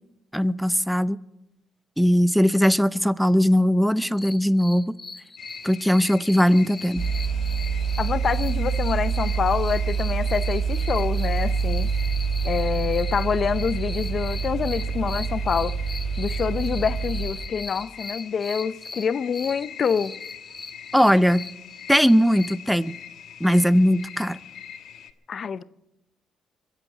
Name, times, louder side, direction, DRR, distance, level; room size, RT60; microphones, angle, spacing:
voice 1, 0.3-1.2 2.0-4.9 5.6-7.0 20.9-21.4 21.9-23.0 23.4-24.4, equal, ahead, 0.6 m, -19 dB
sound 1, 4.1-22.5, left 3 dB, 25° left, 0.9 m, -40 dB
sound 2, 5.4-25.1, left 9 dB, 70° left, 1.3 m, -43 dB
sound 3, 7.0-17.4, right 6 dB, 55° right, 3.9 m, -26 dB
voice 2, 8.0-11.9 12.4-15.8 16.2-20.2 25.3-25.6, left 6 dB, 50° left, 0.6 m, -26 dB
23.0 x 8.1 x 7.3 m
cardioid pair, 90°, 0 cm